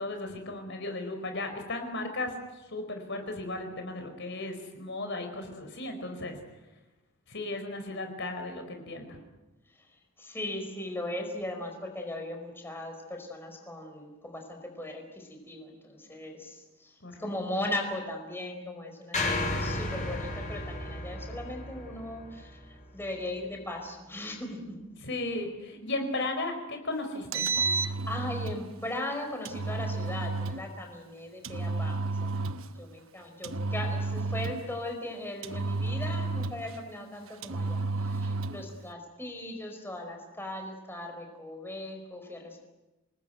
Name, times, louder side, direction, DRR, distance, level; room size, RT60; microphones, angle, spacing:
voice 1, 0.0-2.3 2.7-6.4 7.3-9.2 17.0-17.3 25.0-27.5, left 2 dB, 60° left, 5 dB, 4.7 m, -35 dB
voice 2, 10.2-24.7 27.7-32.5 32.8-42.6, left 1 dB, 10° left, 3 dB, 4.8 m, -38 dB
sound 1, 19.1-23.4, left 2 dB, 35° left, 7.6 m, -34 dB
Engine, 27.1-28.6 29.4-30.6 31.4-32.7 33.4-34.7 35.4-36.8 37.4-38.6, right 3 dB, 75° right, 1.0 m, -31 dB
28.0 x 20.5 x 9.3 m, 1.0 s
head